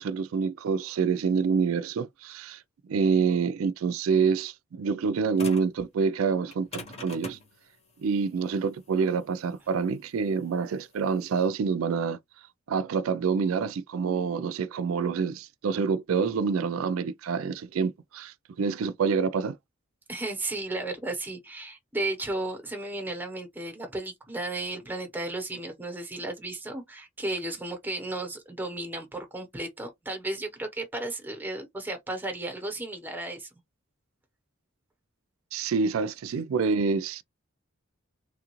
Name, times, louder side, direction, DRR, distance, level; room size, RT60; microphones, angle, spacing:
voice 1, 0.0-2.6 2.9-7.4 8.0-12.2 12.7-19.6 35.5-37.2, right 5 dB, 90° right, 0.4 m, -27 dB
sound 1, 5.4-5.8 6.5-11.4, left 2 dB, 30° left, 1.0 m, -43 dB
voice 2, 20.1-33.5, right 2 dB, 10° right, 0.9 m, -34 dB
3.3 x 2.4 x 2.9 m
head